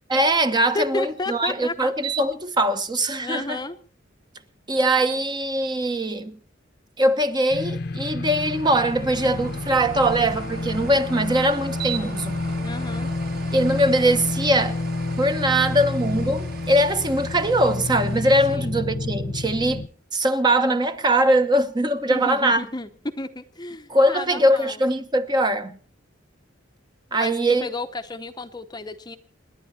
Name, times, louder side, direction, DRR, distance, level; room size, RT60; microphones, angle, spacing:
voice 1, 0.1-3.6 4.7-6.4 7.0-12.4 13.5-14.8 15.2-19.8 20.1-22.7 23.9-25.8 27.1-27.7, right 1 dB, 20° right, 1.0 m, -21 dB
voice 2, 0.7-1.9 3.2-3.8 12.6-13.1 18.5-18.7 22.1-24.8 27.1-27.3 27.6-29.2, left 2 dB, 20° left, 0.8 m, -32 dB
sound 1, 2.0-2.6 3.1-3.2 8.3-18.6, right 6 dB, 50° right, 3.2 m, -39 dB
sound 2, 7.5-19.9, left 2 dB, 55° left, 0.9 m, -29 dB
28.0 x 10.5 x 4.2 m
head